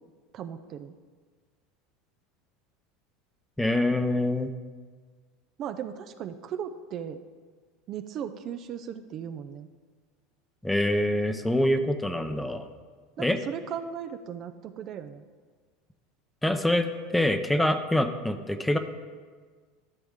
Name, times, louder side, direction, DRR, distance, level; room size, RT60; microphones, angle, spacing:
voice 1, 0.3-0.9 5.6-7.2 7.9-9.7 13.2-15.2, right 8 dB, 45° right, 9 dB, 0.5 m, -37 dB
voice 2, 3.6-4.5 10.6-12.7 13.2-13.4 16.4-16.9 17.1-18.8, left 1 dB, 5° left, 8 dB, 0.7 m, -25 dB
13.5 x 6.2 x 3.6 m, 1.5 s
supercardioid pair, 100°, 0 cm